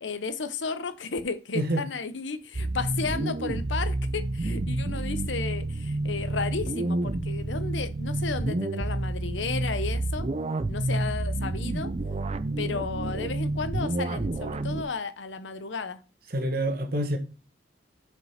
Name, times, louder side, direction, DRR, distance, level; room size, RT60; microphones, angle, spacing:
voice 1, 0.0-10.3 10.7-11.9 12.6-16.0, left 4 dB, 80° left, 0.7 m, -33 dB
voice 2, 1.5-1.8 16.3-17.2, right 1 dB, 55° right, 1.4 m, -27 dB
sound 1, 2.5-14.8, right 2 dB, 35° right, 0.5 m, -29 dB
6.4 x 5.2 x 5.7 m
head